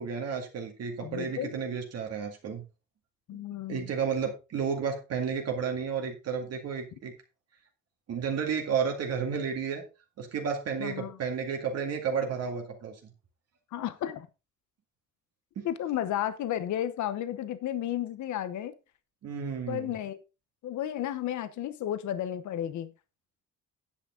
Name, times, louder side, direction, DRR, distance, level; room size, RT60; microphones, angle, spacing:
voice 1, 0.0-2.6 3.3-3.4 3.7-7.1 8.1-9.8 10.2-13.1 15.6-15.7 19.2-19.9, right 6 dB, 50° right, 2.1 m, -32 dB
voice 2, 1.0-1.6 3.3-3.9 10.8-11.2 13.7-14.3 15.6-18.7 19.7-20.2 20.6-22.9, left 11 dB, 65° left, 1.0 m, -33 dB
9.8 x 8.7 x 3.8 m
cardioid pair, 170°, 31 cm